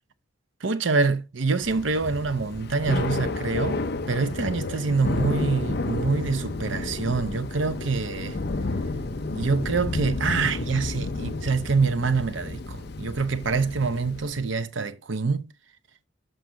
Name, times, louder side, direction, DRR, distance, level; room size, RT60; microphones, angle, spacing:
voice 1, 0.6-3.8 4.1-8.4 9.3-15.5, right 4 dB, 80° right, 0.8 m, -25 dB
Thunder / Rain, 1.6-14.5, left 3 dB, 55° left, 0.7 m, -31 dB
sound 1, 5.1-13.2, left 1 dB, 20° right, 4.3 m, -42 dB
7.8 x 5.8 x 3.8 m
head